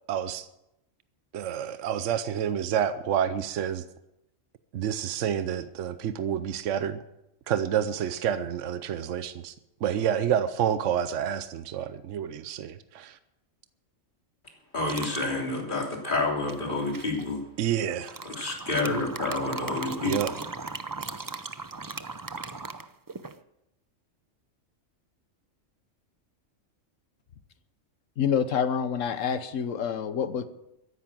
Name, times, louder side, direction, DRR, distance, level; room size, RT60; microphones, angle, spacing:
voice 1, 0.1-0.5 1.3-3.8 4.7-7.0 7.5-9.5 9.8-13.2 17.6-18.2 20.0-20.3, right 9 dB, 70° right, 12 dB, 1.0 m, -28 dB
voice 2, 14.7-17.4 18.2-20.1, left 2 dB, 40° left, 0 dB, 3.3 m, -29 dB
sound 1, 14.9-15.3 16.5-17.2 18.0-23.4, right 4 dB, 30° right, 0.3 m, -37 dB
voice 3, 28.2-30.5, left 7 dB, 75° left, 12 dB, 1.3 m, -27 dB
14.0 x 10.5 x 7.5 m, 0.88 s
omnidirectional pair, 1.4 m